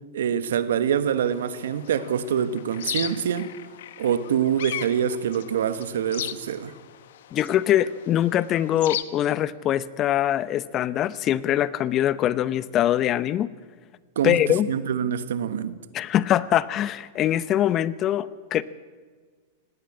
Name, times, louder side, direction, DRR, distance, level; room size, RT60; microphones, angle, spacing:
voice 1, 0.1-3.5 4.0-6.7 14.1-14.4 14.7-15.7, right 8 dB, 75° right, 1.3 m, -25 dB
sound 1, 1.2-9.0, left 12 dB, 70° left, 1.0 m, -37 dB
voice 2, 7.3-13.5 14.2-14.7 15.9-18.6, left 12 dB, 35° left, 0.8 m, -23 dB
18.0 x 18.0 x 8.6 m
hypercardioid pair, 110°, 0 cm